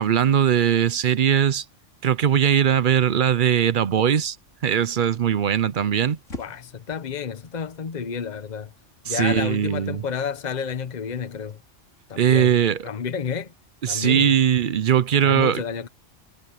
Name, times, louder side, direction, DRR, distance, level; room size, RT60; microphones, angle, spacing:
voice 1, 0.0-1.6 2.0-4.4 4.6-6.2 9.1-10.0 12.2-12.9 13.8-15.6, right 9 dB, 50° right, 0.7 m, -20 dB
sound 1, 5.6-11.6, left 3 dB, 85° left, 5.0 m, -48 dB
voice 2, 6.4-8.7 9.0-11.6 12.1-12.5 12.8-13.5 13.9-14.3 15.2-15.9, left 7 dB, 40° left, 1.1 m, -30 dB
omnidirectional pair, 1.3 m